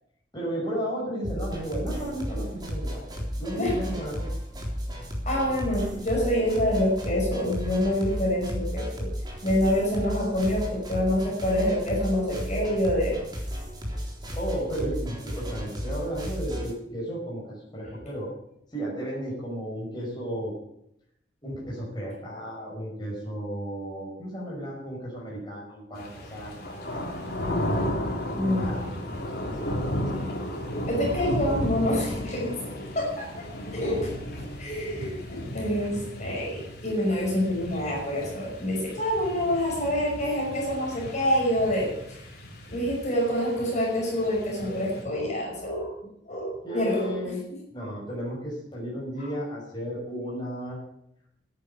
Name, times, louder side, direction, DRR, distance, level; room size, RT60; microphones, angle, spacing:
voice 1, 0.3-4.3 14.4-18.3 18.7-20.6 21.4-26.8 28.4-30.3 46.6-47.4 47.7-50.8, equal, 25° left, -4 dB, 5.8 m, -34 dB
sound 1, 1.2-16.7, equal, 25° right, 3.6 m, -34 dB
voice 2, 5.3-9.1 9.4-13.2 28.3-28.9 30.9-33.4 33.7-34.1 34.6-42.2 42.7-45.9 46.3-47.3 47.8-47.9 49.2-49.3, left 1 dB, 40° left, -3 dB, 5.6 m, -27 dB
sound 2, 25.9-45.0, equal, 55° left, 3.6 m, -34 dB
11.0 x 9.9 x 9.9 m, 0.77 s
head